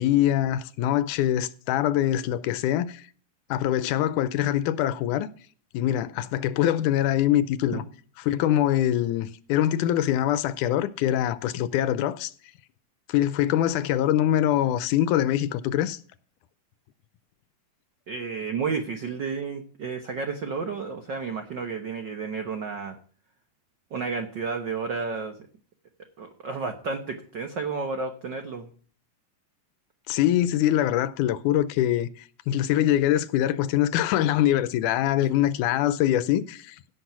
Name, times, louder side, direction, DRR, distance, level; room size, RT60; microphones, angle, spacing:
voice 1, 0.0-3.0 3.5-5.3 5.7-7.8 8.3-12.3 13.1-16.0 30.1-32.1 32.5-36.8, left 12 dB, 80° left, 2.1 m, -23 dB
voice 2, 18.1-23.0 23.9-25.4 26.2-28.7 35.2-35.3, right 5 dB, 80° right, 1.0 m, -31 dB
16.5 x 6.2 x 6.0 m
omnidirectional pair, 3.7 m